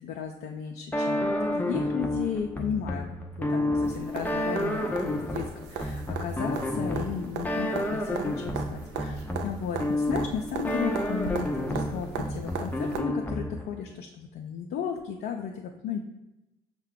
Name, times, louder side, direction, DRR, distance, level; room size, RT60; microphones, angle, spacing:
voice 1, 0.0-16.0, left 7 dB, 60° left, 2 dB, 0.4 m, -35 dB
sound 1, 0.9-13.8, left 1 dB, 10° left, 0.6 m, -30 dB
sound 2, 3.8-13.0 15.0-15.1, right 5 dB, 70° right, 0.5 m, -38 dB
5.5 x 2.2 x 3.6 m, 0.97 s
hypercardioid pair, 45°, 19 cm